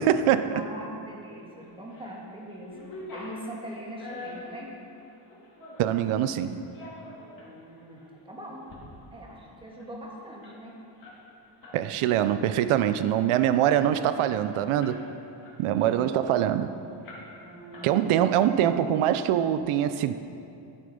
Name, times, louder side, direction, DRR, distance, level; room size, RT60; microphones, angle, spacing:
voice 1, 0.0-0.5 5.8-6.6 11.7-15.0 15.6-16.7 17.8-20.1, right 10 dB, 90° right, 11 dB, 0.6 m, -24 dB
voice 2, 0.5-4.7 7.4-8.6 9.1-10.7 15.7-16.0 17.4-18.2, equal, 10° right, -3 dB, 1.6 m, -42 dB
sound 1, 1.6-2.1 2.5-6.1 6.6-7.5 8.0-8.1 8.5-8.8 9.1-9.2 9.5-11.8 12.1-12.3 12.7-13.1 13.6-13.7 13.9-15.1 15.4-16.6 17.0-17.5 17.7-18.4, left 2 dB, 40° left, 2.4 m, -45 dB
12.0 x 7.8 x 5.2 m, 2.7 s
wide cardioid pair, 175°, 49 cm